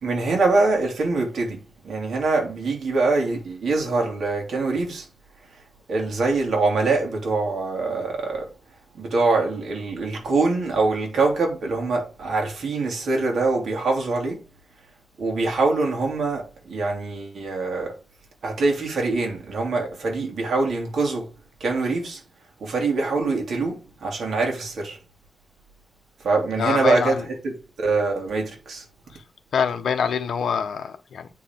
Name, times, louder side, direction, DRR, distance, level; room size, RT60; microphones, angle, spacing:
voice 1, 0.0-5.1 5.9-8.5 8.9-14.4 15.2-17.9 18.4-21.3 21.6-22.2 22.6-25.0 26.2-28.8, right 3 dB, 60° right, 2.8 m, -24 dB
voice 2, 26.6-27.2 29.5-31.3, left 6 dB, 70° left, 0.8 m, -25 dB
8.4 x 4.6 x 3.7 m
wide cardioid pair, 170°, 0 cm